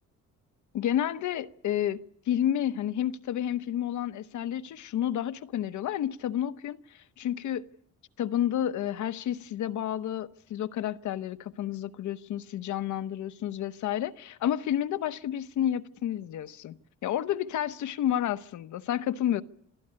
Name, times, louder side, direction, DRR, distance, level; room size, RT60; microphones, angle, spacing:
voice 1, 0.7-7.7 8.2-16.8 17.0-19.4, left 11 dB, 75° left, 1.0 m, -30 dB
26.5 x 14.0 x 9.8 m
cardioid pair, 90°, 30 cm